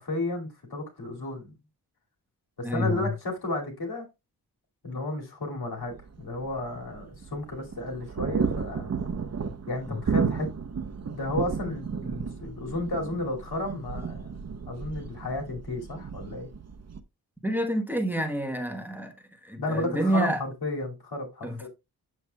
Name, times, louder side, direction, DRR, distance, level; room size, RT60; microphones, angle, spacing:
voice 1, 0.0-1.5 2.6-4.1 4.8-8.9 9.7-10.5 11.1-16.5 19.6-21.7, left 2 dB, 80° left, 2.5 m, -33 dB
voice 2, 2.6-3.1 9.9-10.0 17.4-19.1 19.4-20.4 21.4-21.7, equal, 5° right, 1.1 m, -28 dB
sound 1, 5.8-17.0, right 5 dB, 40° right, 0.8 m, -33 dB
8.1 x 7.1 x 2.3 m
wide cardioid pair, 110°, 38 cm